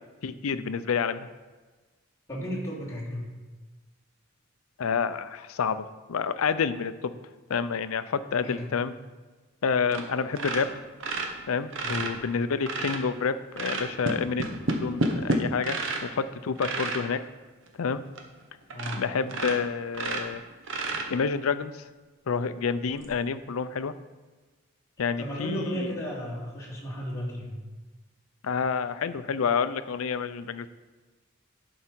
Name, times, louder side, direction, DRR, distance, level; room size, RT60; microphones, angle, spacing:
voice 1, 0.2-1.3 4.8-7.2 7.5-8.9 9.6-10.7 11.5-15.8 16.0-17.2 17.8-18.0 19.0-20.4 21.1-21.8 22.3-23.9 25.0-25.9 28.4-30.7, left 5 dB, 80° left, 13 dB, 0.5 m, -29 dB
voice 2, 2.3-3.3 8.4-8.7 11.8-12.1 18.7-19.0 25.2-27.5, equal, 15° left, -7 dB, 2.8 m, -34 dB
sound 1, 9.9-10.1 10.3-13.0 13.5-16.1 16.6-17.0 17.7-17.8 18.2-18.3 18.7-19.0 19.3-21.4 22.9-23.1, right 2 dB, 65° right, 1.1 m, -30 dB
11.0 x 5.4 x 4.5 m, 1.3 s
head